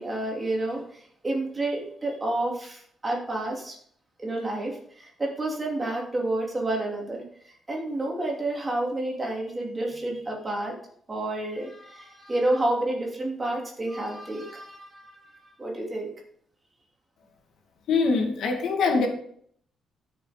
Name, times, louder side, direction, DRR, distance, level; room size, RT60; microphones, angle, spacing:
voice 1, 0.0-3.8 4.2-10.7 11.1-16.1, right 1 dB, 15° right, -1 dB, 2.9 m, -30 dB
voice 2, 17.9-19.1, left 4 dB, 70° left, 2 dB, 2.4 m, -23 dB
13.0 x 6.8 x 5.2 m, 0.62 s
cardioid pair, 160°, 0 cm